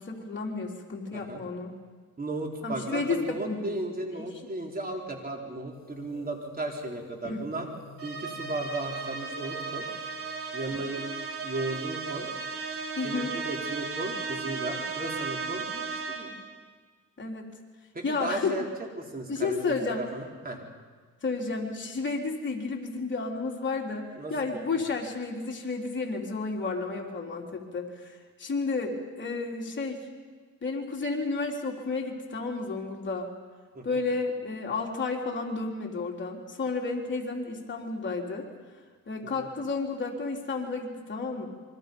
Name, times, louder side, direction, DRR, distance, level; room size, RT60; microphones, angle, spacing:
voice 1, 0.0-1.7 2.6-3.7 7.2-7.4 13.0-13.3 17.2-17.5 18.0-18.5 19.3-20.0 20.5-20.6 21.2-30.1 30.6-33.3 33.8-38.5 39.1-41.5, left 4 dB, 40° left, 0 dB, 3.6 m, -32 dB
voice 2, 1.1-1.4 2.2-7.7 8.0-9.8 10.5-11.0 11.4-12.3 13.0-16.4 17.9-20.6 24.2-24.7 33.7-34.0 39.2-39.5, right 2 dB, 30° right, 1 dB, 4.2 m, -35 dB
sound 1, 5.7-12.1, left 6 dB, 65° left, 2.4 m, -51 dB
sound 2, 8.0-16.5, right 4 dB, 50° right, 3.9 m, -35 dB
27.5 x 24.0 x 5.4 m, 1.5 s
cardioid pair, 90°, 30 cm